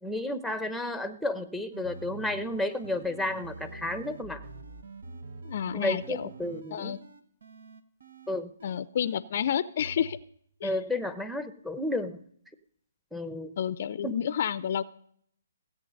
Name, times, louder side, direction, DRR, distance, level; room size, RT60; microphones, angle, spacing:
voice 1, 0.0-4.4 5.7-7.0 8.3-8.5 10.6-12.2 13.1-13.5 14.0-14.2, left 1 dB, ahead, 10 dB, 0.8 m, -32 dB
sound 1, 1.7-9.2 9.8-10.2, right 3 dB, 70° right, 1.1 m, -46 dB
voice 2, 5.4-6.3 6.7-7.0 8.6-10.2 10.6-10.7 13.6-14.8, left 9 dB, 50° left, 16 dB, 0.5 m, -30 dB
17.0 x 8.4 x 5.2 m, 0.66 s
figure-of-eight pair, 140°, 0 cm